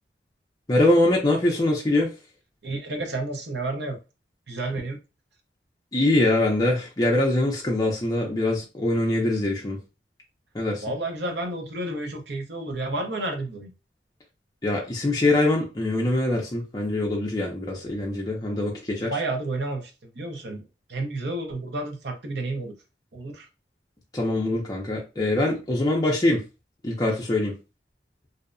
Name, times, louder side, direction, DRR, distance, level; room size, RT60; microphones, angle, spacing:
voice 1, 0.7-2.1 5.9-9.8 10.5-10.8 14.6-19.2 24.1-26.4 26.8-27.5, left 1 dB, 20° left, -2 dB, 0.4 m, -23 dB
voice 2, 2.6-4.0 4.5-5.0 10.8-13.7 19.0-22.7 23.1-23.5, right 2 dB, 70° right, 3 dB, 0.7 m, -31 dB
2.7 x 2.1 x 2.5 m, 0.29 s
head